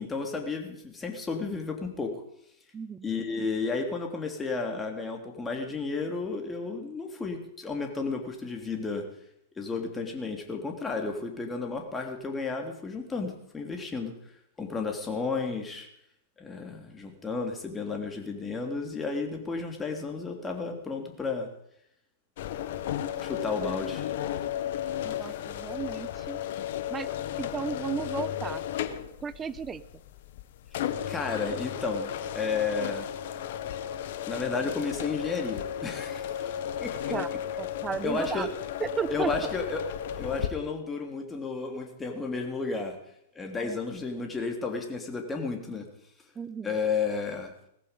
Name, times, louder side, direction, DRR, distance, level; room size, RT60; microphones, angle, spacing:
voice 1, 0.0-2.1 3.0-9.0 9.5-14.3 14.6-15.9 16.4-21.5 23.2-24.1 25.0-25.4 31.1-33.1 34.3-37.1 38.0-38.5 39.1-43.0 43.3-45.9 46.6-47.5, left 4 dB, 15° left, 3 dB, 3.1 m, -32 dB
voice 2, 2.7-3.1 25.0-26.4 26.9-27.1 27.4-28.6 29.2-29.8 37.1-37.3 37.6-38.5 38.8-39.3 43.6-43.8 46.4-46.8, right 6 dB, 20° right, 15 dB, 0.7 m, -34 dB
sound 1, 22.4-40.5, left 10 dB, 55° left, 1.3 m, -34 dB
18.0 x 15.0 x 5.4 m, 0.77 s
figure-of-eight pair, 105°, 0 cm